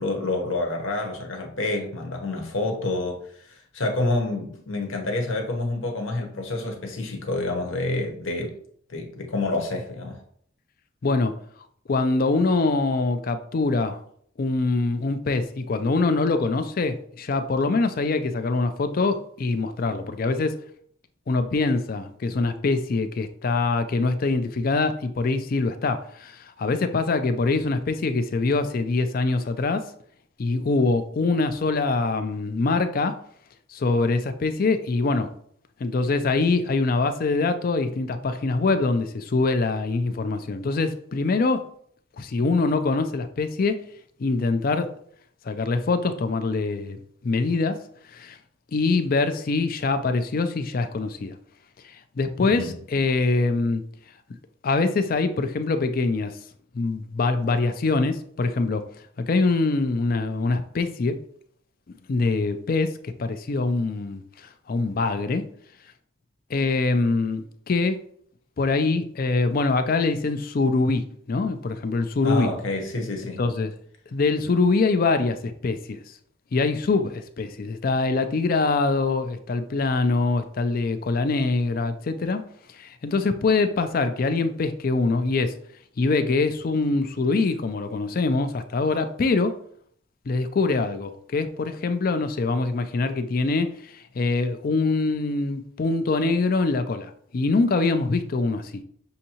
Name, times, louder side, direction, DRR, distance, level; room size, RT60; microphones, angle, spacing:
voice 1, 0.0-8.5 8.9-10.2 52.4-52.7 72.2-73.4, left 2 dB, 70° left, 1.0 m, -28 dB
voice 2, 11.0-11.3 11.9-14.0 14.4-20.6 21.3-29.9 30.4-33.2 33.7-35.3 35.8-41.7 42.2-43.8 44.2-44.9 45.4-47.8 48.1-48.4 48.7-51.4 51.8-53.8 54.6-56.4 56.7-58.9 59.2-61.2 62.1-65.4 66.5-68.0 68.6-72.5 73.4-73.7 74.1-76.0 76.5-82.4 82.7-85.6 86.0-89.6 90.3-98.8, left 3 dB, 45° left, 0.4 m, -24 dB
6.4 x 2.7 x 2.8 m
head